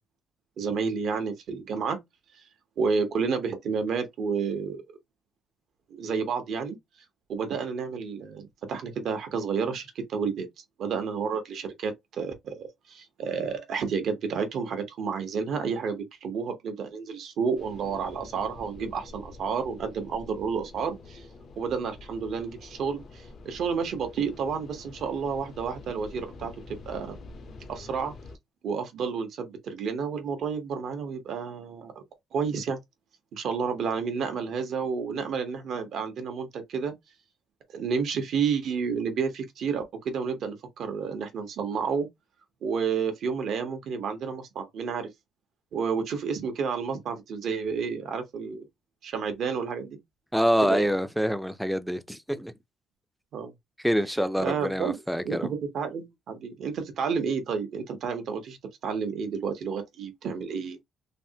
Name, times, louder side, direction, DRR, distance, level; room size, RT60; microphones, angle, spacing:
voice 1, 0.6-2.0 2.8-4.8 5.9-6.8 7.3-10.5 10.8-21.3 21.6-27.2 27.7-28.1 28.6-32.0 32.3-32.8 33.3-36.9 37.7-42.1 42.6-45.1 45.7-48.6 49.0-50.0 50.6-50.9 53.3-53.5 54.4-55.0 55.2-58.6 58.8-60.8, right 5 dB, 70° right, 0.9 m, -30 dB
sound 1, 17.6-28.4, left 3 dB, 60° left, 0.7 m, -47 dB
voice 2, 50.3-52.5 53.8-55.5, equal, ahead, 0.4 m, -26 dB
3.4 x 2.0 x 2.7 m
cardioid pair, 90°, 0 cm